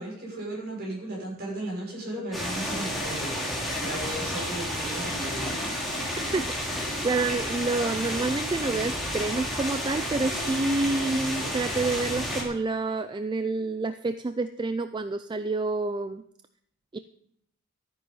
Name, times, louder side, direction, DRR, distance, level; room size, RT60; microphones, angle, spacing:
voice 1, 0.0-3.3 3.8-6.0, right 1 dB, 50° right, -3 dB, 6.5 m, -36 dB
sound 1, 2.3-12.4, equal, ahead, 3.1 m, -31 dB
voice 2, 7.0-16.2 16.9-17.0, right 3 dB, 20° right, 11 dB, 0.4 m, -28 dB
13.0 x 9.4 x 5.5 m, 0.71 s
head